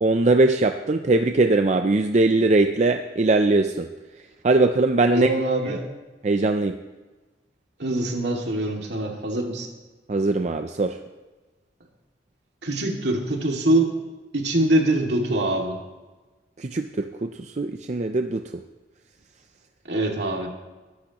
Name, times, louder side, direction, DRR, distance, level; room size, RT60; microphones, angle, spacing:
voice 1, 0.0-3.9 4.4-5.3 6.2-6.8 10.1-11.0 16.6-18.5, right 2 dB, 40° right, 6 dB, 0.5 m, -21 dB
voice 2, 5.1-5.9 7.8-9.7 12.6-14.0 14.3-15.8 19.8-20.5, right 1 dB, 70° right, 1 dB, 2.3 m, -23 dB
21.5 x 11.5 x 3.0 m, 1.2 s
head